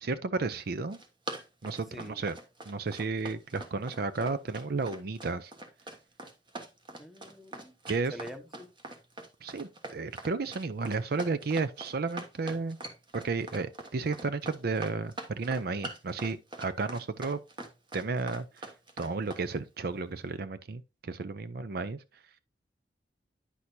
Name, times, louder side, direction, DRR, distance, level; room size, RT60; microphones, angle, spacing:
voice 1, 0.0-1.0 1.6-2.4 2.7-5.5 7.9-8.1 9.4-12.8 13.1-17.4 17.9-18.7 19.0-22.0, right 4 dB, 60° right, 0.5 m, -33 dB
Run, 0.7-19.4, right 2 dB, 25° right, 1.3 m, -43 dB
voice 2, 1.9-2.2 7.0-7.7 8.1-8.7, equal, ahead, 1.0 m, -45 dB
9.9 x 6.2 x 2.7 m
head